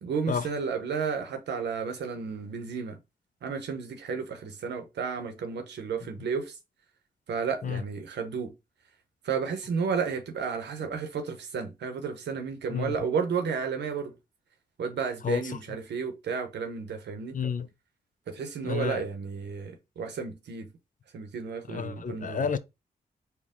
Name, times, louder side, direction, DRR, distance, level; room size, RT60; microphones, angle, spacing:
voice 1, 0.0-3.0 3.4-6.6 7.3-8.5 9.2-14.1 14.8-17.4 18.3-20.7 21.1-22.5, right 6 dB, 85° right, 0.8 m, -32 dB
voice 2, 17.3-17.7 18.6-19.0 21.7-22.6, left 6 dB, 50° left, 0.5 m, -30 dB
4.4 x 2.2 x 3.6 m
cardioid pair, 60°, 17 cm